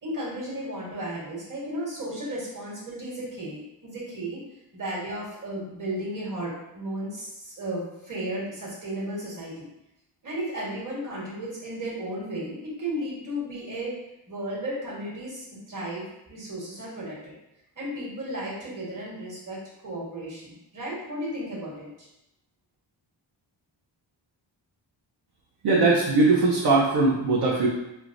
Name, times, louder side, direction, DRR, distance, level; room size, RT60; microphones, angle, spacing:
voice 1, 0.0-4.4 4.7-9.7 10.2-13.9 14.3-17.3 17.7-22.1, right 1 dB, 45° right, -6 dB, 1.3 m, -34 dB
voice 2, 25.6-27.7, right 3 dB, 60° right, -4 dB, 0.6 m, -20 dB
4.4 x 2.1 x 2.5 m, 0.89 s
wide cardioid pair, 95°, 46 cm